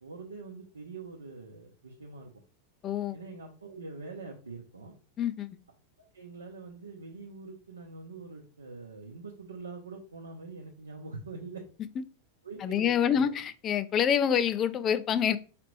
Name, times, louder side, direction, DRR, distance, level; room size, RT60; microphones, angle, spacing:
voice 1, 0.0-2.4 3.1-4.9 6.0-11.7 12.4-13.3, right 3 dB, 75° right, 0.7 m, -44 dB
voice 2, 2.8-3.2 5.2-5.5 12.6-15.4, left 8 dB, 30° left, 0.4 m, -26 dB
4.8 x 3.3 x 3.1 m
figure-of-eight pair, 90°, 0 cm